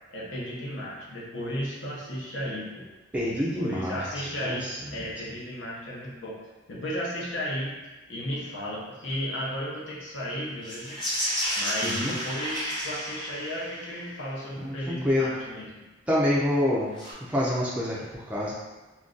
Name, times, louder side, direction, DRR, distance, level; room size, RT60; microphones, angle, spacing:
voice 1, 0.1-2.9 3.3-6.3 6.7-7.7 8.1-11.0 11.6-15.8, equal, 75° left, -5 dB, 0.8 m, -34 dB
voice 2, 3.1-4.8 11.8-12.1 14.6-14.7 15.0-15.3 16.1-16.9 17.3-18.5, left 1 dB, 5° right, -6 dB, 0.4 m, -27 dB
sound 1, 10.6-14.1 16.9-17.1, equal, 25° left, 0.9 m, -31 dB
2.5 x 2.2 x 3.7 m, 1.2 s
head